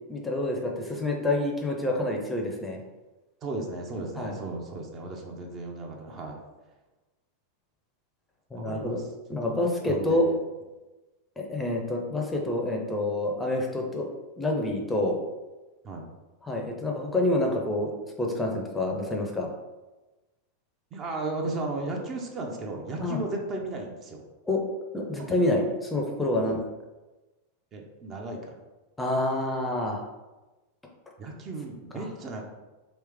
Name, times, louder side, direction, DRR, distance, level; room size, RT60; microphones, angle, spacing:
voice 1, 0.1-2.8 4.2-4.4 8.5-9.0 9.3-10.3 11.4-14.1 14.4-15.2 16.4-19.5 23.0-23.2 24.5-24.6 24.9-26.6 29.0-30.0 31.9-32.0, left 1 dB, 10° left, 1 dB, 0.6 m, -27 dB
voice 2, 3.4-6.4 8.5-9.0 9.4-9.6 9.9-10.3 15.8-16.1 20.9-24.2 25.2-25.3 26.3-26.6 27.7-28.6 31.2-32.4, right 2 dB, 30° right, 1 dB, 0.6 m, -35 dB
3.1 x 3.1 x 3.4 m, 1.1 s
figure-of-eight pair, 90°, 0 cm